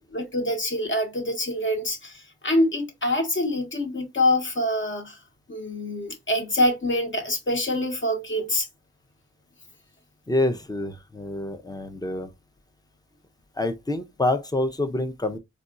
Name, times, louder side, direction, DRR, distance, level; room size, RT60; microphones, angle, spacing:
voice 1, 0.0-5.2 5.5-8.7, left 1 dB, 40° left, 1.0 m, -25 dB
voice 2, 10.3-12.3 13.6-15.4, left 2 dB, 15° left, 0.6 m, -27 dB
4.1 x 2.3 x 2.5 m
wide cardioid pair, 75°, 29 cm